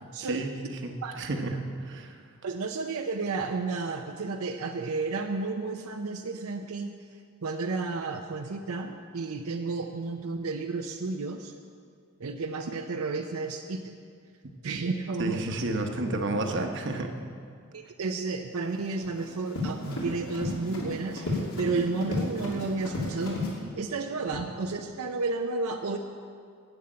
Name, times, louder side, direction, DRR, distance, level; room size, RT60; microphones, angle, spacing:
voice 1, 0.2-2.2 15.2-17.2, right 2 dB, 55° right, 4 dB, 1.0 m, -31 dB
voice 2, 2.4-7.0 7.4-11.5 12.2-13.9 14.6-15.6 17.7-23.4 23.8-26.0, right 3 dB, 80° right, 4 dB, 0.6 m, -32 dB
Run, 18.7-23.5, left 2 dB, 80° left, 2.7 m, -33 dB
11.5 x 7.1 x 8.7 m, 2.2 s
head